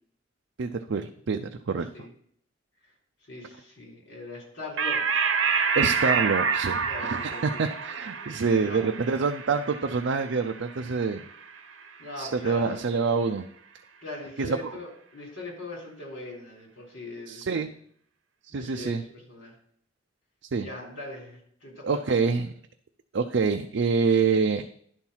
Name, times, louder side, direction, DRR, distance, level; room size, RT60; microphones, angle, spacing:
voice 1, 0.6-1.9 5.7-11.2 12.2-13.5 14.4-14.8 17.3-17.7 18.5-19.0 20.5-20.7 21.8-22.5 23.1-24.7, right 4 dB, 70° right, 5 dB, 0.5 m, -26 dB
voice 2, 3.3-5.3 6.8-7.6 8.4-8.8 12.0-12.9 14.0-17.7 18.5-19.5 20.6-22.3, left 2 dB, 70° left, -2 dB, 3.6 m, -41 dB
sound 1, 4.8-11.7, right 5 dB, 85° right, 0.8 m, -28 dB
10.5 x 4.5 x 5.6 m, 0.64 s
head